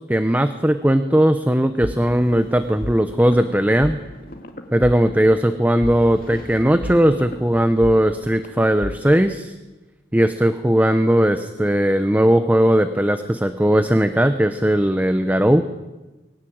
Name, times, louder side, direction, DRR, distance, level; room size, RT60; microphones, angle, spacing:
voice 1, 0.1-4.0 4.7-9.5 10.1-15.6, equal, 10° right, 9 dB, 0.9 m, -18 dB
sound 1, 1.8-9.4, left 1 dB, 55° left, 2.4 m, -35 dB
23.0 x 17.5 x 8.9 m, 1.1 s
head